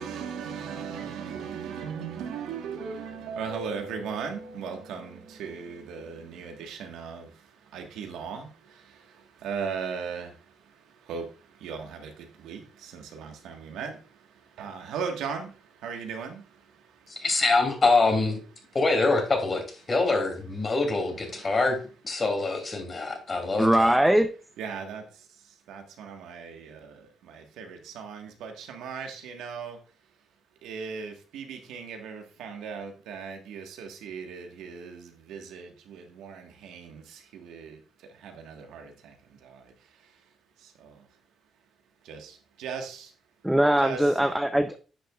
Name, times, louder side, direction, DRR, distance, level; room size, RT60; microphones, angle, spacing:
voice 1, 0.0-7.3 7.7-8.5 9.4-10.3 11.1-11.3 11.6-12.1 12.4-14.0 14.6-15.5 15.8-16.4 21.4-21.6 24.6-25.0 25.7-26.9 27.3-29.8 30.6-37.0 37.3-37.8 38.2-38.9 42.1-42.3 42.6-43.1 43.8-44.3, right 6 dB, 85° right, 1.4 m, -37 dB
voice 2, 17.1-18.4 18.7-21.8 22.0-23.9, left 3 dB, 35° left, 2.7 m, -25 dB
voice 3, 23.6-24.3 43.4-44.8, right 1 dB, 5° right, 0.5 m, -21 dB
9.9 x 6.9 x 2.3 m
cardioid pair, 90°, 0 cm